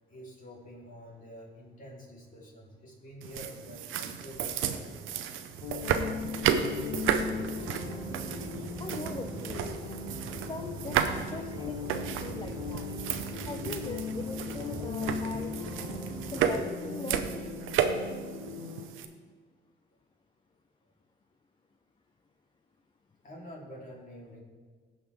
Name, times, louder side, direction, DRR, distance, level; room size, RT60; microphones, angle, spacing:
voice 1, 0.1-5.1 23.2-24.4, equal, 40° left, -3 dB, 3.2 m, -47 dB
sound 1, 3.2-19.0, right 8 dB, 85° right, 0.7 m, -33 dB
sound 2, 5.6-18.9, left 5 dB, 85° left, 0.9 m, -39 dB
sound 3, 6.6-16.7, right 4 dB, 20° right, 0.3 m, -44 dB
voice 2, 8.5-9.8 10.5-12.9 13.5-15.5 16.3-17.2, left 3 dB, 25° left, 4 dB, 0.6 m, -41 dB
16.5 x 5.5 x 3.5 m, 1.5 s
cardioid pair, 90°, 20 cm